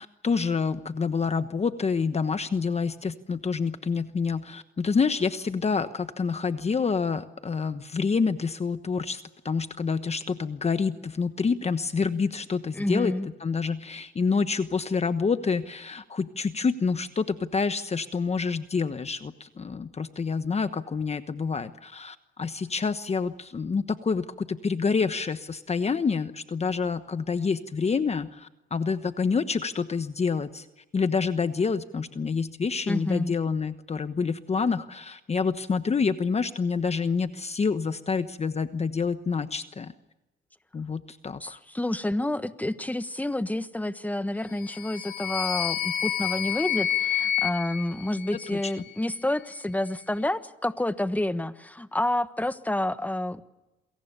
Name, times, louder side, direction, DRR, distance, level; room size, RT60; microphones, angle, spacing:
voice 1, 0.0-13.1 13.4-30.7 30.9-39.9 40.7-41.6 48.5-48.7, left 5 dB, 30° left, 10 dB, 1.2 m, -27 dB
voice 2, 12.7-13.3 32.9-33.3 41.4-53.4, left 1 dB, 10° left, 11 dB, 1.4 m, -29 dB
sound 1, 44.5-48.8, left 10 dB, 55° left, 4.2 m, -29 dB
28.5 x 22.5 x 6.8 m, 1.0 s
cardioid pair, 90°, 20 cm